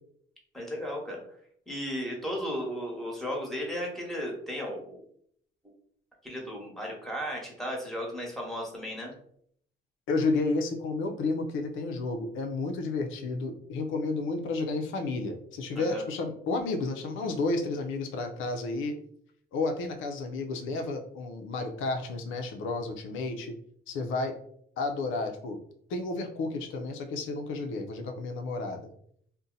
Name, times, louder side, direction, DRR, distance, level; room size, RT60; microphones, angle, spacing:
voice 1, 0.5-1.2 1.7-5.0 6.2-9.1 15.7-16.0, equal, ahead, -2 dB, 1.2 m, -35 dB
voice 2, 10.1-18.9 19.5-23.5 23.9-24.3 24.8-25.6 25.9-28.9, left 3 dB, 85° left, 4 dB, 0.5 m, -31 dB
2.6 x 2.1 x 3.8 m, 0.66 s
cardioid pair, 90°, 20 cm